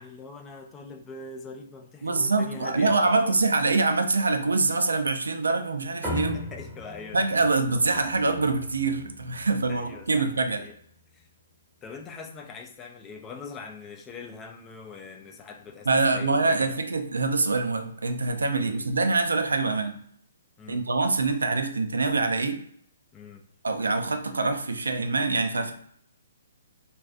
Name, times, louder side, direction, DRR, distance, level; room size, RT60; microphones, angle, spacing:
voice 1, 0.0-3.3 6.1-7.3 9.7-10.8 11.1-11.3 11.8-16.8 18.5-19.0 20.6-20.9 23.1-23.4, left 4 dB, 20° left, 3 dB, 0.3 m, -42 dB
voice 2, 2.0-6.4 7.1-10.6 15.9-20.0 20.7-22.6 23.6-25.7, right 3 dB, 90° right, 7 dB, 0.4 m, -25 dB
sound 1, 6.0-10.8, left 1 dB, 10° right, 0.8 m, -39 dB
2.3 x 2.3 x 2.4 m, 0.64 s
hypercardioid pair, 140°, 0 cm